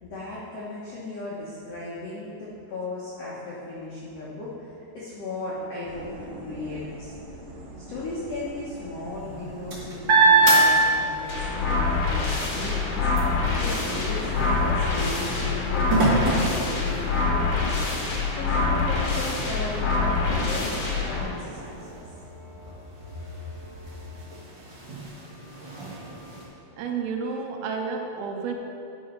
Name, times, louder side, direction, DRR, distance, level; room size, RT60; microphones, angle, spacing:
voice 1, 0.0-7.1 7.9-17.7 18.3-20.7 21.1-21.9, left 2 dB, 80° left, -7 dB, 1.4 m, -36 dB
sound 1, 5.9-17.0, right 1 dB, 65° right, 2.4 m, -41 dB
sound 2, 9.1-11.5 11.9-17.4 18.0-18.1 18.5-26.4, right 2 dB, 50° right, 1.4 m, -26 dB
sound 3, 11.3-21.2, left 4 dB, 60° left, 1.6 m, -25 dB
voice 2, 26.8-28.5, right 5 dB, 80° right, 2 dB, 2.5 m, -30 dB
10.5 x 5.3 x 5.4 m, 2.6 s
omnidirectional pair, 4.8 m